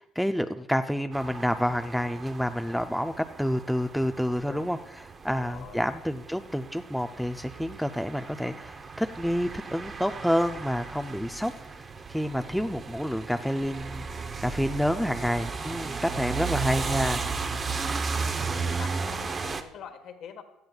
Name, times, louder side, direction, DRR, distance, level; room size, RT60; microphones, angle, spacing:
voice 1, 0.0-4.8 5.2-17.2, equal, ahead, 7 dB, 0.4 m, -29 dB
sound 1, 1.1-19.6, right 5 dB, 30° right, 0.7 m, -35 dB
voice 2, 5.3-5.9 15.9-17.8 18.4-20.4, left 8 dB, 60° left, 6 dB, 1.4 m, -45 dB
17.0 x 12.0 x 2.3 m, 0.88 s
supercardioid pair, 100°, 0 cm